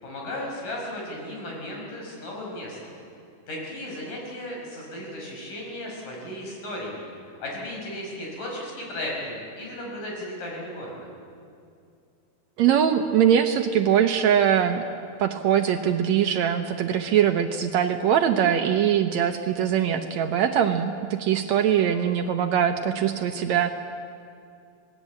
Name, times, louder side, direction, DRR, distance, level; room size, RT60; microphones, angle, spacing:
voice 1, 0.0-3.0 3.5-7.0 7.3-11.1, left 1 dB, 75° left, -2 dB, 7.1 m, -35 dB
voice 2, 12.6-14.8 15.2-23.7, right 9 dB, 70° right, 6 dB, 1.9 m, -22 dB
27.0 x 19.0 x 8.4 m, 2.4 s
omnidirectional pair, 3.8 m